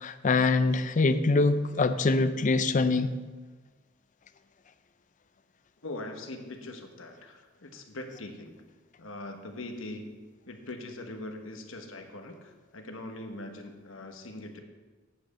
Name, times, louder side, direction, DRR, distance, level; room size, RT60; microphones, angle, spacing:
voice 1, 0.0-3.1, left 3 dB, 40° left, 11 dB, 0.5 m, -24 dB
voice 2, 5.8-8.6 9.0-10.1 10.5-14.6, left 2 dB, 75° left, 4 dB, 1.2 m, -41 dB
8.9 x 5.2 x 7.0 m, 1.3 s
head